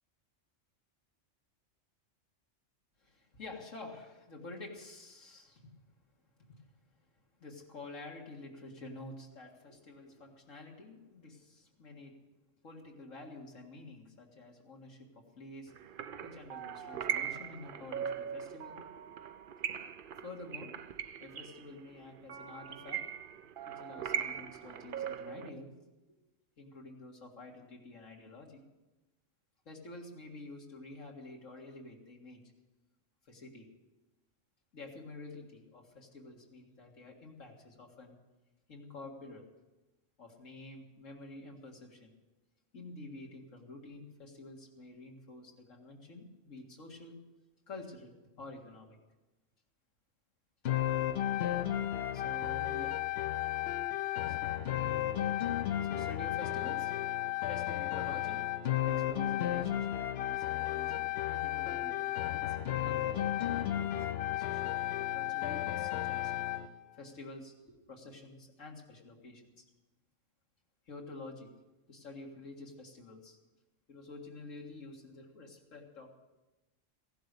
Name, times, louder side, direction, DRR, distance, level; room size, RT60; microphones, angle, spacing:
voice 1, 3.0-5.7 6.5-6.7 7.4-12.1 12.6-15.7 16.2-18.9 20.2-20.7 21.2-23.0 23.7-25.7 26.6-28.6 29.7-32.4 33.3-33.7 34.7-38.2 38.7-39.5 40.2-42.1 42.7-47.2 47.7-49.0 52.1-53.0 54.3-54.4 55.8-56.9 57.5-58.5 58.8-62.6 62.8-63.9 64.3-66.3 66.9-69.6 70.9-71.5 71.9-73.4 73.9-76.1, left 2 dB, 90° left, 0 dB, 2.3 m, -49 dB
sound 1, 15.7-25.5, right 8 dB, 55° right, 0.7 m, -40 dB
sound 2, 50.7-66.7, left 12 dB, 60° left, 0.8 m, -33 dB
15.5 x 11.5 x 6.6 m, 1.1 s
omnidirectional pair, 1.3 m